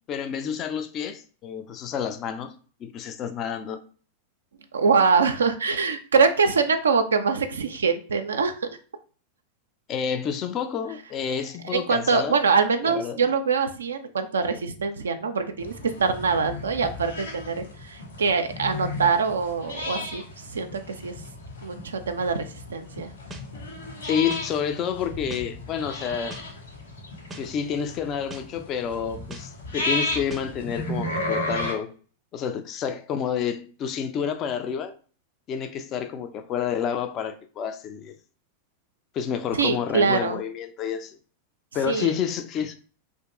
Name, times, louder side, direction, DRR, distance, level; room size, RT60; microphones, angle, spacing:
voice 1, 0.1-2.5 2.8-3.8 9.9-12.4 12.8-13.2 24.0-26.4 27.4-31.9 32.3-34.9 35.5-38.1 39.1-41.2 41.7-42.8, left 7 dB, 35° left, 0.4 m, -29 dB
voice 2, 4.7-8.5 11.7-15.7 16.0-21.2 21.6-23.1 39.5-40.4 41.9-42.1, right 5 dB, 70° right, 0.3 m, -24 dB
sound 1, 15.6-31.7, left 2 dB, 65° left, 1.5 m, -34 dB
sound 2, 23.3-23.4 24.3-24.4 25.3-25.4 26.3-26.4 27.3-27.4 28.3-28.4 29.3-29.4 30.3-30.4, right 1 dB, 15° right, 0.5 m, -40 dB
2.8 x 2.6 x 3.5 m
figure-of-eight pair, 90°, 0 cm